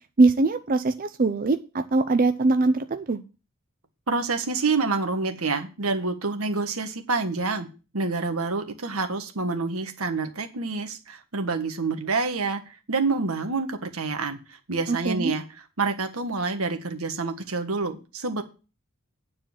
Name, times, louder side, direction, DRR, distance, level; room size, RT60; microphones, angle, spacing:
voice 1, 0.2-3.2 14.9-15.3, right 3 dB, 40° right, 8 dB, 0.6 m, -22 dB
voice 2, 4.1-7.7 7.9-18.4, right 3 dB, 90° right, 6 dB, 1.5 m, -27 dB
9.6 x 4.3 x 7.2 m, 0.32 s
head